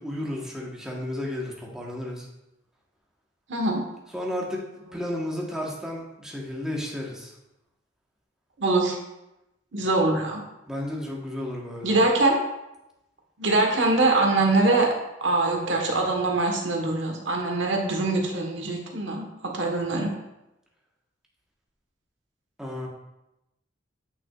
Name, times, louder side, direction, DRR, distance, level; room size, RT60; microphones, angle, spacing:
voice 1, 0.0-2.3 4.1-4.6 4.9-7.3 10.7-12.0 22.6-22.9, left 1 dB, 5° right, -3 dB, 1.2 m, -32 dB
voice 2, 3.5-3.8 8.6-9.0 9.7-10.4 11.8-12.4 13.4-14.9 15.2-20.1, right 2 dB, 70° right, 1 dB, 1.3 m, -23 dB
8.8 x 5.9 x 2.4 m, 0.91 s
head